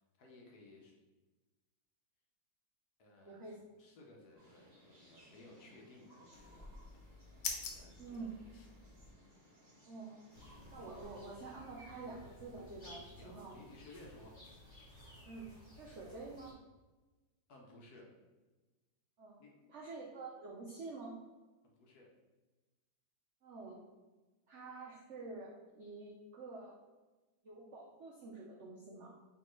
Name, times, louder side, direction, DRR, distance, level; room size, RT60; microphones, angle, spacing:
voice 1, 0.2-0.9 3.0-6.8 7.6-8.3 13.0-14.4 17.5-18.1 19.4-19.9 21.8-22.1, left 2 dB, 65° left, -1 dB, 1.2 m, -58 dB
voice 2, 3.2-3.6 8.0-8.3 9.9-10.2 10.7-13.5 15.2-15.5 15.8-16.5 19.2-19.4 19.7-21.1 23.4-23.8 24.5-26.8 27.4-29.2, right 3 dB, 75° right, -3 dB, 0.6 m, -48 dB
sound 1, 4.3-11.6, equal, 25° right, 1.1 m, -63 dB
sound 2, 6.3-9.1, left 5 dB, 85° left, 0.6 m, -45 dB
sound 3, 10.3-16.5, equal, 35° left, 0.9 m, -56 dB
4.4 x 3.1 x 3.0 m, 1.2 s
omnidirectional pair, 2.0 m